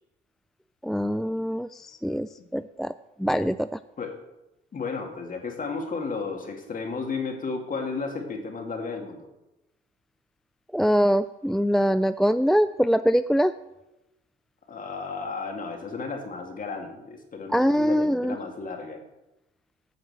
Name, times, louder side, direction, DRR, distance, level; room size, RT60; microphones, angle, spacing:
voice 1, 0.8-2.9 3.2-3.8 10.7-13.5 17.5-18.4, equal, ahead, 13 dB, 0.3 m, -23 dB
voice 2, 4.7-9.3 14.7-19.0, left 4 dB, 45° left, 3 dB, 2.4 m, -33 dB
9.2 x 5.7 x 7.5 m, 0.97 s
cardioid pair, 90°, 20 cm